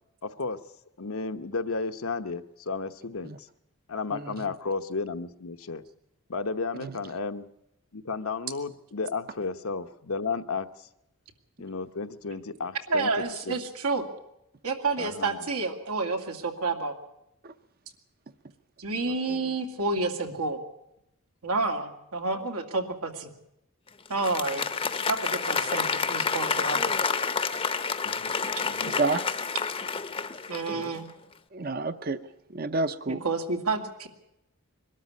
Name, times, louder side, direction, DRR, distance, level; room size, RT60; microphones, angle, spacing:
voice 1, 0.2-0.6 1.0-3.5 3.9-5.8 6.3-7.5 7.9-10.9 11.6-13.1 13.5-13.6 15.0-15.4 19.1-19.5 28.0-28.3 28.7-29.0, left 4 dB, 75° left, 9 dB, 1.0 m, -33 dB
voice 2, 12.9-14.1 14.6-17.0 18.8-20.6 21.4-23.3 24.1-24.7 25.1-26.9 30.5-31.1 33.2-34.1, right 3 dB, 90° right, 4 dB, 2.5 m, -29 dB
Applause, 24.1-31.0, left 5 dB, 25° left, 0.7 m, -29 dB
voice 3, 28.8-29.2 31.5-32.2 32.5-33.2, right 3 dB, 45° right, 12 dB, 0.7 m, -29 dB
22.5 x 13.0 x 9.6 m, 0.83 s
head